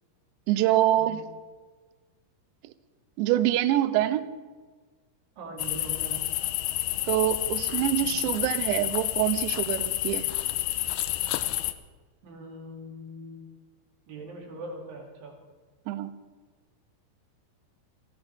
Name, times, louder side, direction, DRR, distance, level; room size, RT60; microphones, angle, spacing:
voice 1, 0.5-1.2 3.2-4.3 7.1-10.2 15.9-16.1, right 13 dB, 80° right, 12 dB, 2.8 m, -25 dB
voice 2, 5.4-6.3 8.0-8.3 12.2-13.4 14.1-15.4, right 1 dB, 50° right, 0 dB, 3.9 m, -41 dB
sound 1, 5.6-11.7, left 16 dB, 85° left, 2.5 m, -29 dB
29.0 x 12.0 x 3.5 m, 1.4 s
omnidirectional pair, 5.6 m